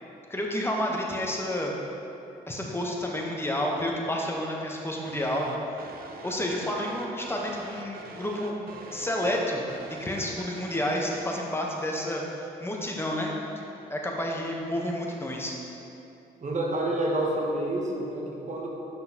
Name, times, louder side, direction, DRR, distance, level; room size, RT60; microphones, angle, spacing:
voice 1, 0.3-1.7 2.5-5.5 5.7-5.9 6.2-8.5 8.9-9.6 9.9-15.5, left 1 dB, 15° left, -1 dB, 1.0 m, -30 dB
sound 1, 5.0-11.3, right 4 dB, 60° right, 0.6 m, -44 dB
voice 2, 16.4-18.8, right 1 dB, 45° right, -1 dB, 1.1 m, -28 dB
5.8 x 5.6 x 2.9 m, 2.8 s
supercardioid pair, 55°, 17 cm